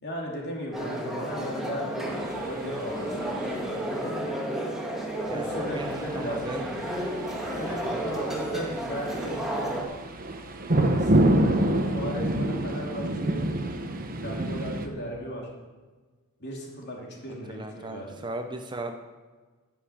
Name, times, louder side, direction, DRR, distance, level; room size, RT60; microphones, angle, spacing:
voice 1, 0.0-2.1 2.4-3.6 5.3-6.5 7.5-9.4 10.7-13.4 14.0-15.5 16.4-18.2, equal, 50° left, -2 dB, 3.1 m, -36 dB
sound 1, 0.7-9.8, right 1 dB, ahead, 1.9 m, -32 dB
sound 2, 2.1-4.0 5.3-14.9, right 1 dB, 40° right, 1.0 m, -28 dB
voice 2, 5.3-6.7 7.9-8.4 17.5-18.9, right 2 dB, 20° right, 6 dB, 0.7 m, -37 dB
10.5 x 7.5 x 8.6 m, 1.4 s
head